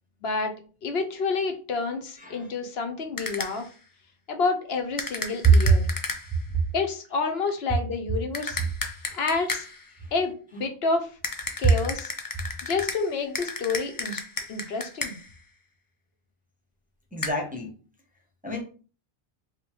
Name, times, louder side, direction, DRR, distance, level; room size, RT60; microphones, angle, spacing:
voice 1, 0.2-0.5 0.8-3.7 4.3-5.9 6.7-8.6 9.1-9.6 10.1-11.2 11.6-12.1 12.6-14.2 14.5-15.1, left 4 dB, 80° left, 5 dB, 1.0 m, -29 dB
voice 2, 2.2-2.5 17.1-17.7 18.4-18.6, left 2 dB, 10° right, 0 dB, 0.6 m, -32 dB
sound 1, 3.2-3.7 5.0-6.4 8.3-9.9 11.2-15.4 17.2-17.3, left 3 dB, 30° left, 0.4 m, -34 dB
4.9 x 2.2 x 2.9 m, 0.38 s
omnidirectional pair, 1.0 m